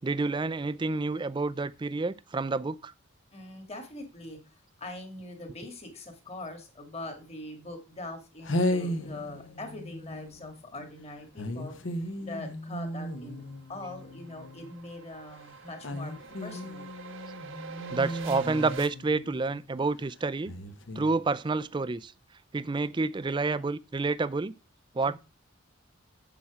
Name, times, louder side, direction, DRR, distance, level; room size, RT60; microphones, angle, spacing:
voice 1, 0.0-2.9 17.9-20.5 21.0-22.1 22.5-24.5 24.9-25.1, right 3 dB, 20° right, 0.4 m, -29 dB
voice 2, 3.3-13.4 13.7-16.1 16.4-16.9 25.0-25.2, left 2 dB, 30° left, 2.0 m, -42 dB
sound 1, 8.0-8.1 8.4-10.6 11.4-14.8 15.8-19.7 20.5-21.1, left 1 dB, 60° left, 1.1 m, -35 dB
sound 2, 12.5-18.9, right 5 dB, 70° right, 1.2 m, -45 dB
7.5 x 7.1 x 4.8 m
head